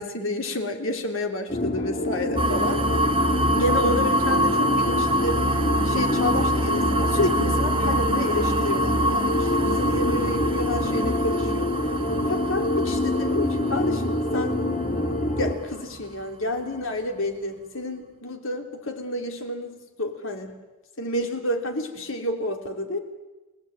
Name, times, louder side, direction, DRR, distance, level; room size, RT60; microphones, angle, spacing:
voice 1, 0.0-2.8 3.5-5.4 5.8-11.7 12.3-14.6 15.4-20.5 21.0-23.0, left 1 dB, 65° left, 4 dB, 3.2 m, -29 dB
sound 1, 1.5-15.6, left 1 dB, 35° left, 2.9 m, -26 dB
sound 2, 2.4-16.1, right 1 dB, 25° right, 1.5 m, -26 dB
28.5 x 18.5 x 9.0 m, 1.1 s
head